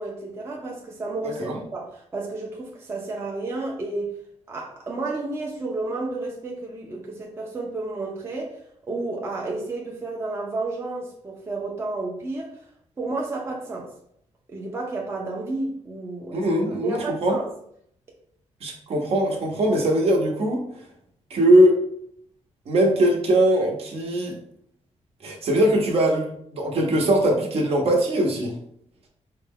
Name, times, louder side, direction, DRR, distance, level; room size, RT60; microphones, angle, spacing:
voice 1, 0.0-4.1 4.5-8.6 8.9-12.5 13.0-13.9 14.5-16.5 16.8-17.5, right 2 dB, 20° right, -2 dB, 0.5 m, -31 dB
voice 2, 1.2-1.5 16.3-17.4 18.6-20.6 21.3-21.8 22.7-24.4 25.2-26.3 26.5-28.5, right 1 dB, 55° right, 1 dB, 0.8 m, -21 dB
4.7 x 2.2 x 3.5 m, 0.68 s
wide cardioid pair, 170°, 12 cm